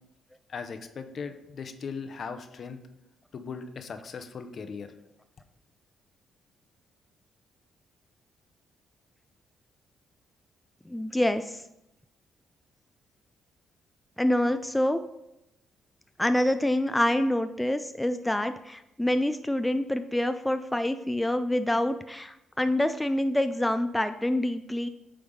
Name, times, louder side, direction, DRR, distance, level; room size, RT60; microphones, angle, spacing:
voice 1, 0.5-2.8 3.3-4.9, left 5 dB, 50° left, 8 dB, 0.7 m, -38 dB
voice 2, 10.9-11.6 14.2-15.0 16.2-24.9, left 1 dB, 5° left, 9 dB, 0.3 m, -26 dB
8.7 x 3.4 x 5.3 m, 0.87 s
cardioid pair, 90°, 0 cm